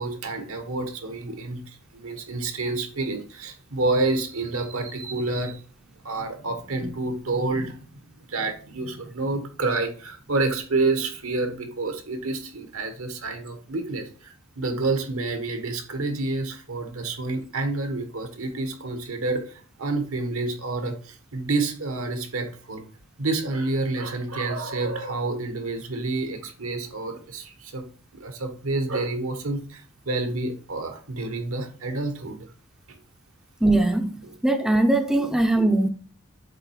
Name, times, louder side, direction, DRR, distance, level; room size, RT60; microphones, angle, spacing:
voice 1, 0.0-5.6 6.0-7.8 8.2-22.8 23.2-27.8 28.1-32.4 32.9-33.0 34.2-34.3 35.2-35.3, right 3 dB, 75° right, 1.5 m, -29 dB
voice 2, 33.6-35.9, right 2 dB, 5° right, 0.6 m, -21 dB
7.7 x 3.7 x 4.6 m
head